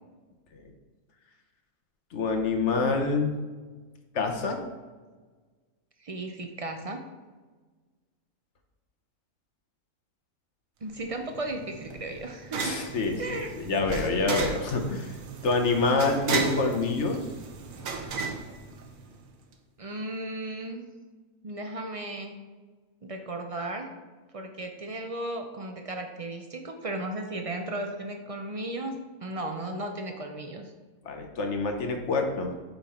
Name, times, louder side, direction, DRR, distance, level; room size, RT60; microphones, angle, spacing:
voice 1, 2.1-3.3 4.1-4.6 12.6-15.1 15.4-17.2 31.0-32.5, left 3 dB, 60° left, 4 dB, 1.2 m, -26 dB
voice 2, 6.0-7.0 10.8-12.9 13.2-13.5 19.8-20.9 21.4-22.3 23.0-23.9 24.3-30.7, right 1 dB, 55° right, 4 dB, 0.4 m, -35 dB
sound 1, 11.0-19.3, right 4 dB, 80° right, 1.2 m, -35 dB
5.7 x 5.6 x 4.3 m, 1.4 s
omnidirectional pair, 1.4 m